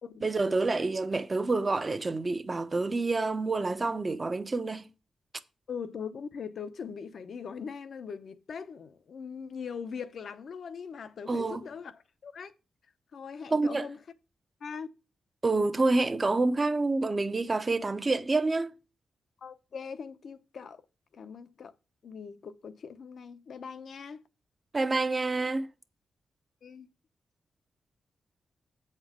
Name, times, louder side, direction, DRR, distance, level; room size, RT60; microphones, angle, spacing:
voice 1, 0.2-4.8 11.3-11.7 13.5-13.9 15.4-18.8 24.7-25.7, right 3 dB, 35° right, 0.8 m, -28 dB
voice 2, 5.7-12.5 13.1-14.0 14.6-14.9 19.4-20.8 21.1-21.7 22.0-24.2 26.6-26.9, left 6 dB, 65° left, 0.7 m, -41 dB
7.7 x 4.5 x 5.9 m
supercardioid pair, 50°, 0 cm